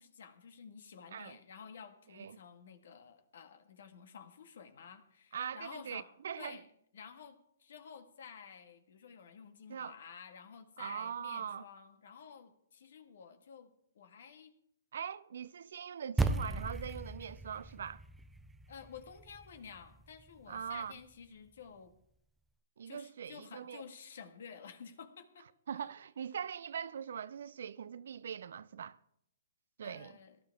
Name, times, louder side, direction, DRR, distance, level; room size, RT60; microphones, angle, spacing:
voice 1, 0.0-6.1 6.4-6.7 6.9-14.5 18.7-21.9 22.8-25.5 29.8-30.4, left 6 dB, 65° left, 1.9 m, -52 dB
voice 2, 5.3-6.6 9.7-10.0 10.8-11.7 14.9-18.0 20.5-20.9 22.8-23.8 25.7-29.0 29.8-30.2, right 8 dB, 65° right, 0.6 m, -42 dB
sound 1, 16.2-20.7, right 3 dB, 5° right, 0.6 m, -37 dB
18.0 x 12.5 x 3.6 m
hypercardioid pair, 130°, 0 cm